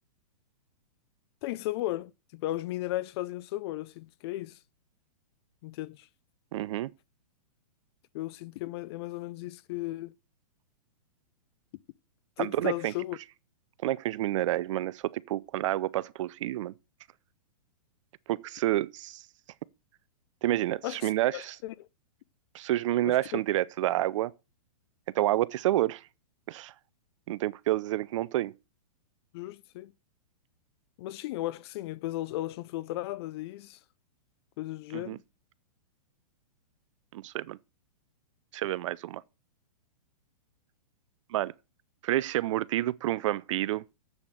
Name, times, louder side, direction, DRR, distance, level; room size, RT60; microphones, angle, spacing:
voice 1, 1.4-4.6 5.6-6.1 8.1-10.1 12.4-13.2 20.8-21.9 23.0-23.4 29.3-29.9 31.0-33.8 34.6-35.2, left 16 dB, 40° left, 0.5 m, -35 dB
voice 2, 6.5-6.9 12.4-12.9 13.8-16.7 18.3-19.2 20.4-21.6 22.5-24.3 25.1-26.0 26.5-26.7 27.3-28.5 34.9-35.2 37.1-37.6 38.5-39.2 41.3-41.5 42.0-43.8, right 14 dB, 50° right, 0.5 m, -29 dB
7.8 x 7.1 x 6.5 m
hypercardioid pair, 130°, 20 cm